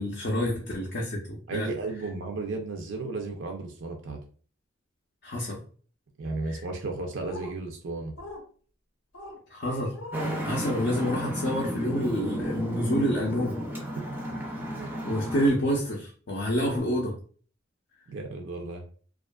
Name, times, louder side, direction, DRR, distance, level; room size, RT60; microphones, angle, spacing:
voice 1, 0.0-1.7 5.2-5.6 6.5-6.6 9.5-9.9 10.4-13.6 15.0-17.1, equal, 50° left, 0.5 m, -28 dB
voice 2, 1.5-4.2 6.2-8.1 14.0-14.1 14.7-14.9 18.1-18.9, right 3 dB, 70° right, 0.4 m, -34 dB
sound 1, 7.2-7.5 8.2-8.4 9.1-9.4 9.9-10.4 10.9-11.2 13.2-13.3 14.2-14.5 15.7-15.9 16.7-16.8, left 2 dB, 90° left, 0.7 m, -42 dB
Traffic noise roadway noise, 10.1-15.5, equal, 10° right, 0.4 m, -33 dB
2.6 x 2.4 x 2.2 m
head